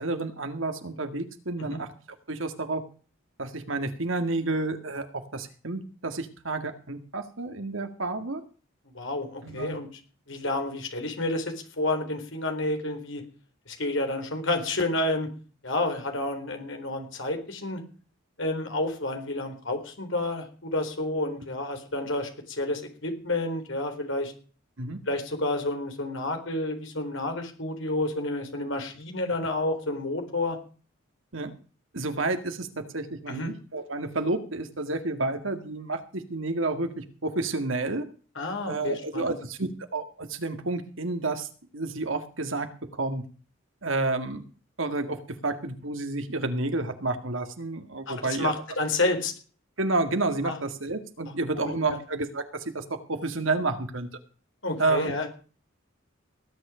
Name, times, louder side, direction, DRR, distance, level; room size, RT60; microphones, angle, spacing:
voice 1, 0.0-1.9 2.3-2.8 3.4-5.1 5.3-8.4 9.4-9.8 24.8-25.0 31.3-31.5 31.9-38.0 38.7-41.5 41.7-42.7 42.9-43.2 43.8-44.4 44.8-48.5 49.8-52.4 52.7-54.1 54.8-55.1, right 2 dB, 70° right, 8 dB, 2.0 m, -30 dB
voice 2, 8.9-9.9 10.3-13.2 13.7-15.3 15.6-17.8 18.4-24.3 25.1-30.6 33.3-33.5 38.4-39.3 48.1-49.3 50.4-50.6 51.6-52.0 54.6-55.3, left 2 dB, 65° left, 5 dB, 4.0 m, -30 dB
19.0 x 9.4 x 5.0 m, 0.39 s
head